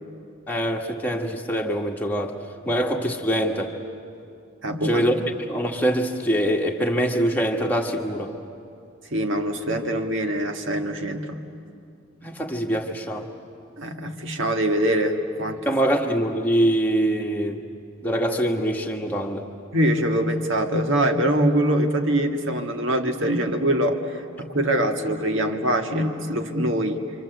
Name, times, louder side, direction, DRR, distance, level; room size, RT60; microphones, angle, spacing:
voice 1, 0.5-2.4 2.6-3.8 4.8-5.1 5.5-8.3 12.2-13.3 15.6-17.6 18.0-19.5, right 1 dB, 10° left, 0 dB, 1.6 m, -24 dB
voice 2, 4.6-5.1 9.1-11.4 13.8-15.6 19.7-24.0 24.4-27.0, right 1 dB, 55° right, 5 dB, 1.7 m, -23 dB
27.0 x 26.0 x 8.0 m, 2.5 s
head